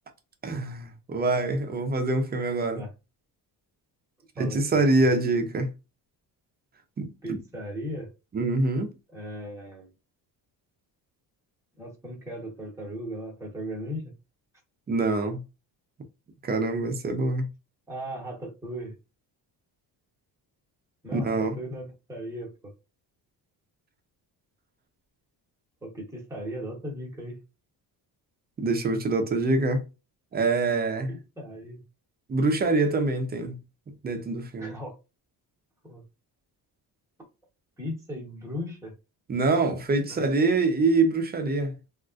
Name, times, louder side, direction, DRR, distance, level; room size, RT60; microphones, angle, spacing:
voice 1, 0.4-2.8 4.4-5.7 7.0-7.4 8.3-8.9 14.9-15.4 16.4-17.5 21.1-21.5 28.6-29.8 30.3-31.1 32.3-33.6 34.0-34.7 39.3-41.7, right 3 dB, 25° right, 0.4 m, -25 dB
voice 2, 4.4-5.1 7.2-8.1 9.1-9.9 11.8-14.1 17.9-18.9 21.0-22.7 25.8-27.4 31.1-31.8 34.6-35.0 35.8-36.0 37.8-38.9 40.1-40.2, equal, 5° right, 1.0 m, -37 dB
3.5 x 2.4 x 2.4 m
cardioid pair, 155°, 41 cm